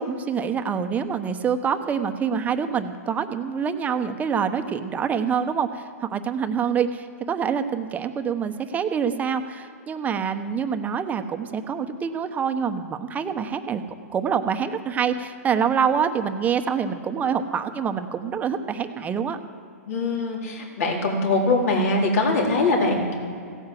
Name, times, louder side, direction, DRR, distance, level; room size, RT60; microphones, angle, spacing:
voice 1, 0.1-13.8 14.1-19.4, right 7 dB, 20° right, 7 dB, 0.9 m, -26 dB
voice 2, 19.9-23.1, left 2 dB, 65° left, 0 dB, 3.9 m, -22 dB
16.5 x 9.6 x 7.7 m, 2.5 s
hypercardioid pair, 130°, 9 cm